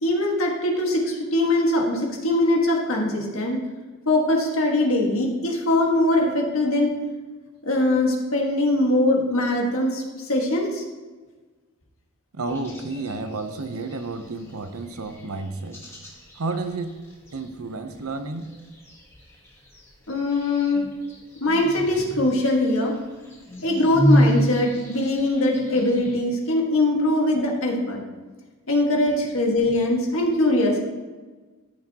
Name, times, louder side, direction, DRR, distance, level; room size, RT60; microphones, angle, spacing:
voice 1, 0.0-3.6 4.1-6.9 7.6-10.8 20.1-20.8 21.4-22.9 23.6-28.0 28.7-30.8, left 1 dB, 75° left, 0 dB, 1.6 m, -22 dB
voice 2, 12.3-15.8 16.4-16.9 17.3-18.5, right 3 dB, 85° right, 9 dB, 0.7 m, -31 dB
sound 1, 12.5-26.2, equal, 10° left, 1.2 m, -30 dB
13.5 x 6.0 x 2.9 m, 1.3 s
head